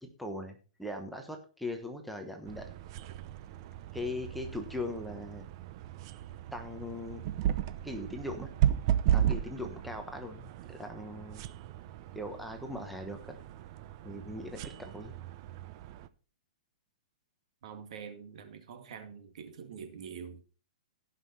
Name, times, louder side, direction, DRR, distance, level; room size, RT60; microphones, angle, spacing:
voice 1, 0.0-2.7 3.9-5.5 6.5-7.2 7.8-8.5 9.1-11.4 12.1-13.4 14.0-15.1, left 1 dB, ahead, 1.1 m, -40 dB
sound 1, 2.4-16.1, right 11 dB, 35° right, 0.7 m, -35 dB
voice 2, 17.6-20.4, right 7 dB, 60° right, 2.1 m, -45 dB
17.0 x 5.8 x 4.2 m
hypercardioid pair, 155°, 4 cm